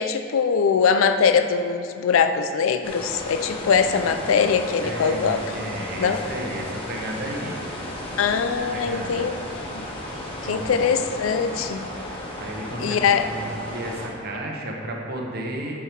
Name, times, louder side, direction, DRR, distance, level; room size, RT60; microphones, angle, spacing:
voice 1, 0.0-5.5 6.0-6.2 8.2-9.3 9.7-9.9 10.5-11.8 12.8-13.3, left 6 dB, 85° left, 8 dB, 0.4 m, -22 dB
sound 1, 2.8-14.1, left 1 dB, 25° left, 1.4 m, -34 dB
voice 2, 3.6-4.5 4.8-7.6 8.7-9.3 10.4-11.0 12.4-13.0 13.3-13.5 13.7-15.7, right 1 dB, 50° right, 0 dB, 1.0 m, -33 dB
8.3 x 5.8 x 4.6 m, 2.5 s
head